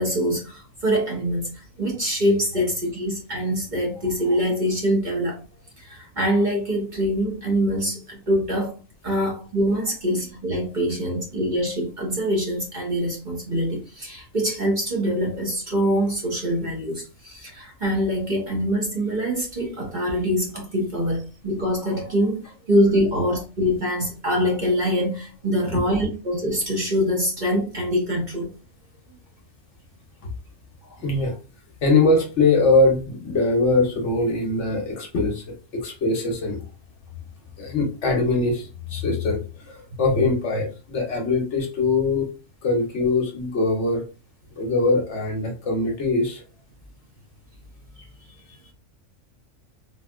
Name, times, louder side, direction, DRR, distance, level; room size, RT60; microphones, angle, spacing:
voice 1, 0.0-1.5 1.8-5.4 5.8-8.7 9.0-28.5 48.0-48.1, equal, 40° right, -1 dB, 0.8 m, -24 dB
voice 2, 31.0-31.4 31.8-36.6 37.6-42.3 42.6-44.0 44.5-46.4, left 3 dB, 60° left, 2 dB, 1.0 m, -22 dB
3.5 x 2.6 x 2.3 m, 0.33 s
omnidirectional pair, 1.4 m